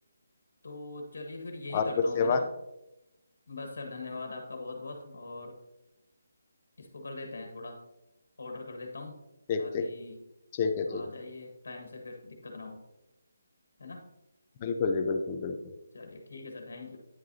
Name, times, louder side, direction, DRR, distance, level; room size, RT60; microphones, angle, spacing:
voice 1, 0.6-2.5 3.5-5.5 6.8-7.8 8.4-9.2 9.6-10.2 10.9-12.8 13.8-14.0 15.9-17.0, left 3 dB, 60° left, 3 dB, 1.6 m, -42 dB
voice 2, 1.7-2.4 9.5-9.9 10.5-11.0 14.6-15.7, left 5 dB, 15° left, 5 dB, 0.5 m, -28 dB
9.4 x 7.8 x 2.8 m, 0.92 s
hypercardioid pair, 180°, 0 cm